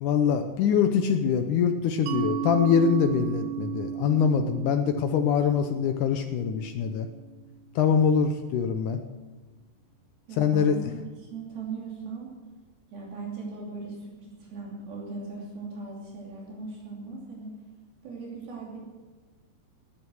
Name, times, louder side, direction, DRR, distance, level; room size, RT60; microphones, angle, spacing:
voice 1, 0.0-7.1 7.8-9.0 10.4-10.8, left 7 dB, 80° left, 7 dB, 1.8 m, -24 dB
Mallet percussion, 2.1-7.4, right 10 dB, 85° right, 1.8 m, -35 dB
voice 2, 10.3-12.3 12.9-17.5 18.0-18.8, right 4 dB, 70° right, -3 dB, 4.6 m, -38 dB
19.0 x 8.8 x 6.3 m, 1.3 s
omnidirectional pair, 4.6 m